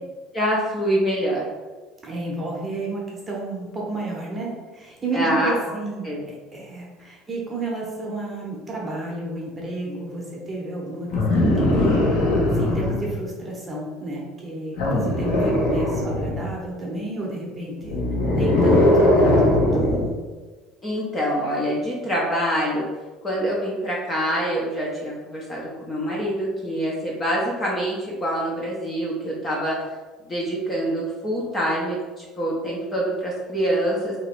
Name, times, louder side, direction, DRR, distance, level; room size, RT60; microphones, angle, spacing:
voice 1, 0.3-1.5 5.1-5.5 6.0-6.2 20.8-22.9 23.2-29.8 30.2-34.2, equal, 15° left, -4 dB, 0.6 m, -25 dB
voice 2, 2.0-12.2 12.5-18.0 18.3-20.2, right 2 dB, 15° right, -4 dB, 0.9 m, -32 dB
sound 1, 11.1-13.1 14.8-16.5 17.8-20.1 21.4-21.5, left 1 dB, 70° left, 1.0 m, -20 dB
3.0 x 2.9 x 4.5 m, 1.3 s
cardioid pair, 170°, 0 cm